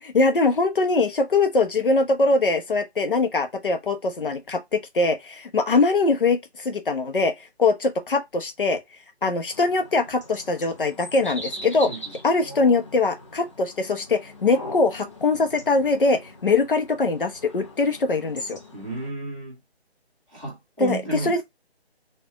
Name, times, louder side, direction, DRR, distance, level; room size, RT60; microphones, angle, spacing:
voice 1, 0.0-8.8 9.2-11.9 12.2-18.6 20.8-21.4, left 3 dB, 55° left, 1.0 m, -22 dB
sound 1, 9.5-19.1, left 1 dB, 30° left, 0.8 m, -41 dB
voice 2, 18.7-19.6 20.3-21.4, right 2 dB, ahead, 1.4 m, -33 dB
4.4 x 2.6 x 4.5 m
figure-of-eight pair, 175°, 33 cm